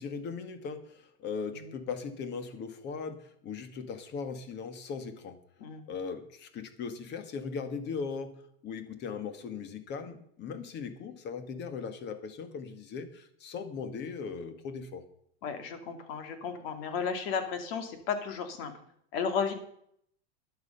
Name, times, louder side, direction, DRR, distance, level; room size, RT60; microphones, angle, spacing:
voice 1, 0.0-5.4 5.9-8.3 8.6-15.0, left 5 dB, 30° left, 11 dB, 1.6 m, -38 dB
voice 2, 15.4-18.7 19.1-19.5, left 6 dB, 60° left, 8 dB, 2.6 m, -33 dB
12.5 x 10.5 x 5.6 m, 0.68 s
supercardioid pair, 155°, 33 cm